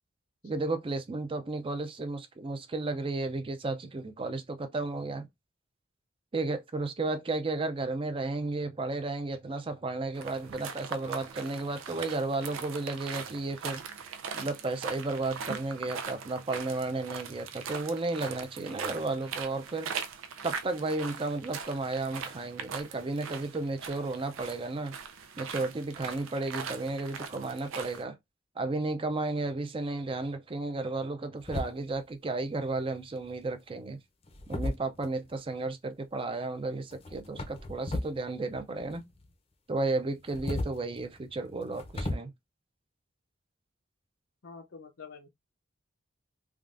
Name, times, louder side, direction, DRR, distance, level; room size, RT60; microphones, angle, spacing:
voice 1, 0.4-5.3 6.3-13.8 14.3-19.9 20.4-25.0 25.4-28.2 28.6-34.0 34.5-39.0 39.7-42.3, right 2 dB, 25° right, 0.4 m, -33 dB
sound 1, 10.2-28.0, right 6 dB, 85° right, 0.5 m, -41 dB
sound 2, 31.4-32.1 33.2-33.5 34.2-35.4 36.9-38.2 38.5-39.3 40.1-42.2, left 1 dB, 30° left, 0.5 m, -36 dB
voice 2, 44.4-45.3, left 5 dB, 70° left, 0.5 m, -47 dB
3.5 x 2.3 x 2.4 m
head